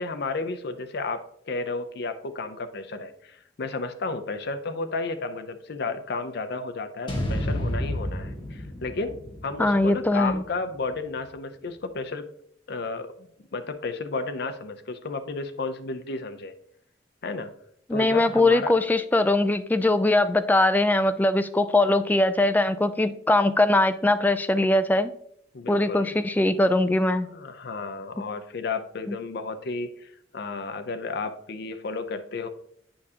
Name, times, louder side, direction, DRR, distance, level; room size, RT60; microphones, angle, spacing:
voice 1, 0.0-12.3 12.7-16.5 17.2-17.5 17.9-18.8 25.5-26.1 27.3-32.5, left 3 dB, 60° left, 8 dB, 0.6 m, -33 dB
sound 1, 7.1-11.3, left 1 dB, 25° left, 1.5 m, -32 dB
voice 2, 9.6-10.4 17.9-25.1 25.7-27.3 29.1-29.2, left 2 dB, 10° left, 10 dB, 0.3 m, -21 dB
8.7 x 4.8 x 2.8 m, 0.68 s
head